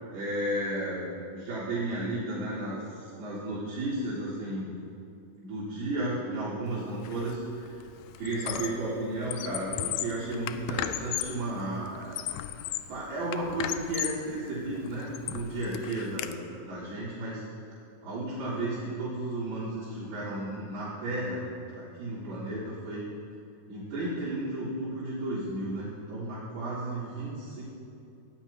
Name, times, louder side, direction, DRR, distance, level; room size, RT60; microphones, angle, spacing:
voice 1, 0.1-4.7 5.4-7.8 8.2-12.2 12.6-17.4 18.0-21.5 21.7-23.1 23.7-27.6, right 1 dB, 70° right, -14 dB, 5.1 m, -33 dB
Squeak, 7.0-7.3 7.7-8.9 9.2-11.4 11.9-13.0 13.3-14.3 14.8-16.3, left 13 dB, 85° left, 2.1 m, -35 dB
18.5 x 14.0 x 2.9 m, 2.5 s
omnidirectional pair, 4.8 m